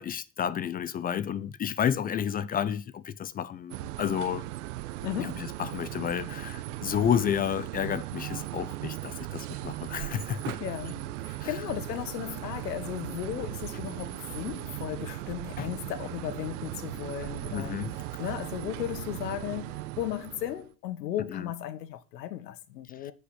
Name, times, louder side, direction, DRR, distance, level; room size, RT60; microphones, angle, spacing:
voice 1, 0.0-4.5 5.2-10.6 11.4-11.6 15.6-15.7 17.5-18.2 21.3-21.5 23.0-23.1, left 9 dB, 20° left, 0.5 m, -31 dB
sound 1, 3.7-20.7, right 16 dB, 65° right, 0.8 m, -38 dB
voice 2, 5.0-5.5 10.6-23.1, left 12 dB, 80° left, 1.7 m, -36 dB
9.7 x 5.3 x 8.2 m
hypercardioid pair, 115°, 49 cm